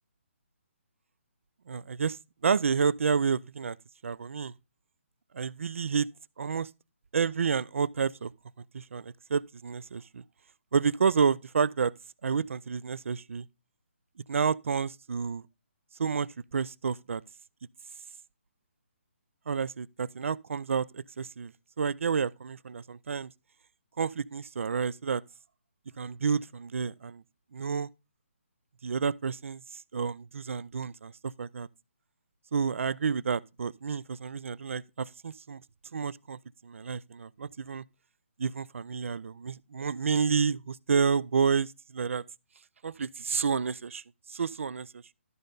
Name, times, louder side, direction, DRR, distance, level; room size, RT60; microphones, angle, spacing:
voice 1, 1.7-3.8 4.0-4.5 5.3-6.1 6.4-6.7 7.1-8.3 8.7-10.2 10.7-11.9 12.2-13.5 14.3-15.4 16.0-17.2 19.5-21.5 21.8-23.3 24.0-25.2 26.0-27.2 27.5-27.9 28.8-31.7 32.5-35.6 35.9-37.8 38.4-42.2 42.8-44.0 44.3-45.0, right 6 dB, 75° right, 0.4 m, -30 dB
12.5 x 5.4 x 3.9 m
hypercardioid pair, 155°, 7 cm